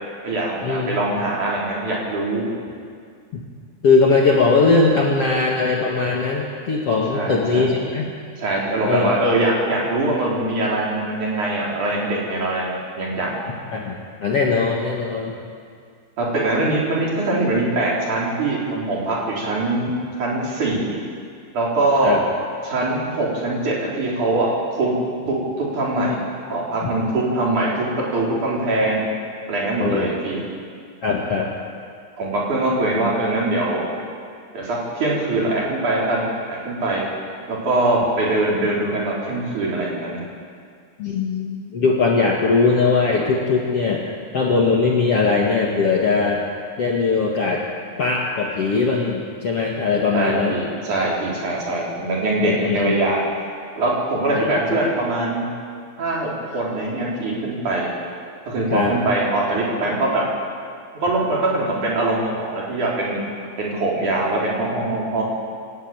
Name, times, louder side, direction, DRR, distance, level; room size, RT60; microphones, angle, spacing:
voice 1, 0.2-2.5 7.1-7.9 8.4-13.3 16.2-19.9 20.2-21.0 21.5-22.1 22.6-24.5 24.8-25.0 25.3-26.2 26.5-29.1 29.5-30.4 32.2-33.8 34.5-37.0 37.5-40.2 50.1-53.2 53.8-55.5 56.0-57.9 58.5-60.3 61.0-63.2 63.6-65.2, right 2 dB, 50° right, -4 dB, 5.3 m, -22 dB
voice 2, 3.8-8.1 8.8-9.2 13.7-15.3 22.0-22.2 26.8-26.9 29.8-30.1 31.0-31.5 41.0-44.1 44.3-46.4 46.8-47.6 48.0-50.6 52.4-53.0 54.4-54.9 58.7-59.0, left 4 dB, 45° left, -2 dB, 2.2 m, -20 dB
27.5 x 12.5 x 9.1 m, 2.2 s
omnidirectional pair, 4.7 m